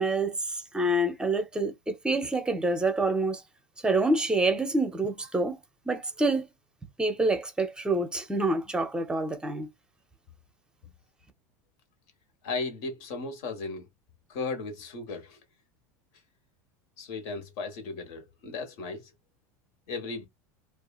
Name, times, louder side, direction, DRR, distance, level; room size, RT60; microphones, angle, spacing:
voice 1, 0.0-3.4 3.8-5.6 5.9-6.5 7.0-9.7, right 2 dB, 10° right, 0.6 m, -27 dB
voice 2, 12.4-13.9 14.3-15.4 17.0-19.1 19.9-20.3, left 3 dB, 65° left, 1.3 m, -36 dB
2.7 x 2.4 x 2.4 m
supercardioid pair, 120°, 9 cm